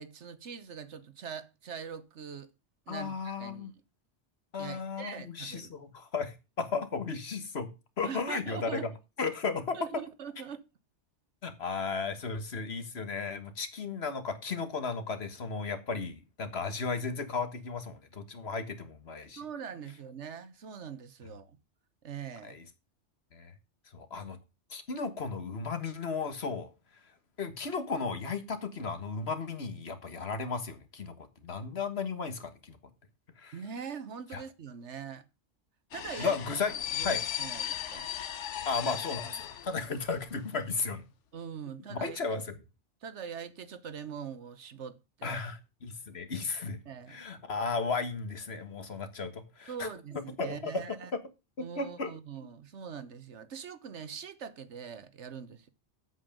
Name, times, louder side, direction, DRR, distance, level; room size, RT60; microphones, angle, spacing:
voice 1, 0.0-2.5 2.9-3.7 4.6-5.7 8.0-8.9 9.7-10.6 19.4-21.6 22.0-22.6 33.5-35.2 35.9-36.4 36.9-38.1 41.3-42.4 43.0-45.4 46.8-47.2 49.7-51.1 51.6-55.7, right 7 dB, 80° right, 1.3 m, -42 dB
voice 2, 2.9-3.7 4.5-7.7 8.0-8.9 9.2-9.8 11.4-19.4 22.4-22.6 23.3-23.5 23.9-24.4 24.7-26.7 27.4-32.8 33.4-33.5 34.3-34.4 36.2-36.7 37.0-37.2 38.6-41.0 41.9-42.6 45.2-46.8 47.1-49.9 50.4-50.8 51.6-52.1, left 4 dB, 60° left, 1.7 m, -35 dB
sound 1, 35.9-40.3 40.6-40.7, left 10 dB, 85° left, 1.1 m, -37 dB
8.2 x 8.0 x 5.1 m
omnidirectional pair, 1.2 m